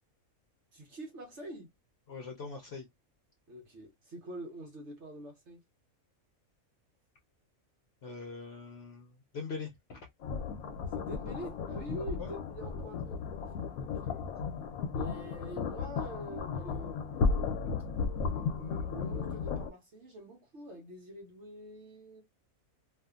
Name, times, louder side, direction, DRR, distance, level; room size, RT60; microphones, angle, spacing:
voice 1, 0.7-1.7 3.5-5.6 10.9-13.2 13.8-14.4 14.9-17.8 18.2-22.2, right 1 dB, 60° right, 1.1 m, -46 dB
voice 2, 2.1-2.9 8.0-10.0 12.2-12.3, left 4 dB, 60° left, 0.8 m, -42 dB
sound 1, 10.2-19.7, left 5 dB, 85° left, 1.0 m, -34 dB
2.7 x 2.4 x 2.3 m
omnidirectional pair, 1.5 m